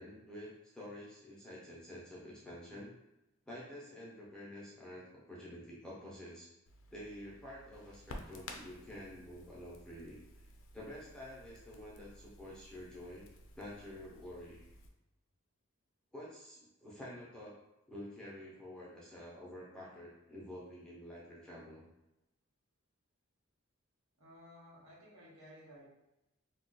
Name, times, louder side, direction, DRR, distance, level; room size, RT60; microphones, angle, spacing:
voice 1, 0.0-2.9 3.5-6.5 6.9-10.2 10.7-13.3 13.6-14.7 16.1-17.5 17.9-21.9, left 1 dB, 5° left, -7 dB, 0.6 m, -49 dB
Crackle, 6.7-14.9, left 1 dB, 65° left, 0.4 m, -54 dB
voice 2, 24.2-25.9, equal, 75° right, -6 dB, 1.1 m, -56 dB
2.4 x 2.3 x 3.9 m, 0.93 s
head